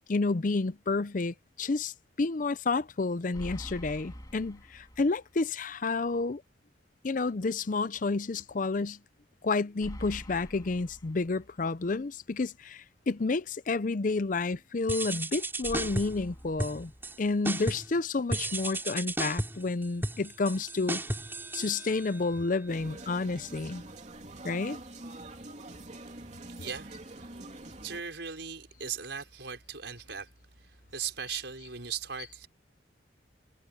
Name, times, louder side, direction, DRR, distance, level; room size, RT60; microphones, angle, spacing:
voice 1, 0.1-1.9 2.2-6.4 7.0-9.0 9.4-16.9 17.2-21.0 21.5-23.8 24.4-24.8, left 3 dB, 45° left, 0.5 m, -30 dB
sound 1, 3.3-5.4 5.7-5.8 9.8-11.8 15.6-17.6, equal, 20° left, 3.7 m, -45 dB
sound 2, 14.9-16.2 16.6-17.2 17.4-18.0 18.3-22.3, right 1 dB, 10° right, 4.5 m, -34 dB
sound 3, 22.7-28.0, right 2 dB, 40° right, 3.3 m, -45 dB
voice 2, 26.6-26.9 27.2-27.3 27.8-30.3 30.9-32.5, right 7 dB, 70° right, 5.5 m, -38 dB
head